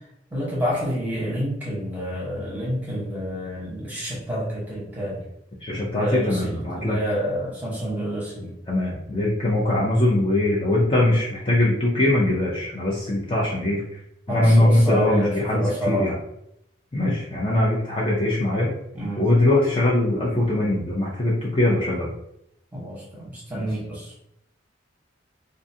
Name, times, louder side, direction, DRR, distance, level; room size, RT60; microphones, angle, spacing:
voice 1, 0.3-5.2 5.7-8.5 14.3-16.1 18.9-19.3 22.7-24.1, equal, 10° right, -6 dB, 0.9 m, -28 dB
voice 2, 5.6-7.0 8.7-13.8 14.3-16.1 16.9-18.7 19.2-22.1, left 1 dB, 25° left, -5 dB, 0.4 m, -21 dB
2.4 x 2.4 x 2.6 m, 0.78 s
head